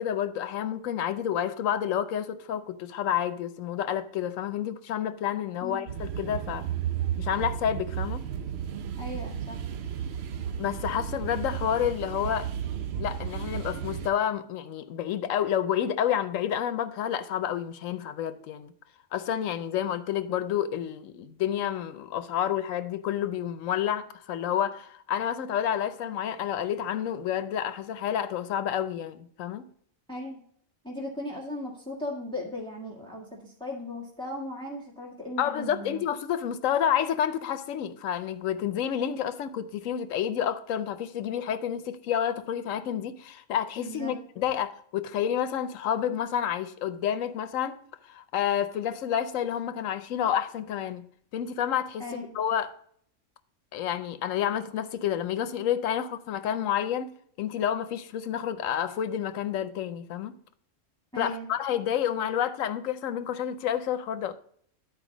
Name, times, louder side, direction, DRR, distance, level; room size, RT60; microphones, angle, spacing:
voice 1, 0.0-6.6 7.2-8.2 10.6-12.5 13.0-18.7 19.1-29.6 35.4-47.8 48.1-51.1 51.3-52.0 52.3-52.7 53.7-57.1 57.4-60.3 61.2-64.3, left 9 dB, 85° left, 1.0 m, -29 dB
sound 1, 5.9-14.1, right 9 dB, 60° right, 0.8 m, -33 dB
voice 2, 9.0-9.6 30.1-30.4 30.8-36.0 43.8-44.1 52.0-52.4 61.1-61.5, left 1 dB, 5° left, 1.4 m, -37 dB
10.5 x 4.6 x 4.9 m
omnidirectional pair, 1.3 m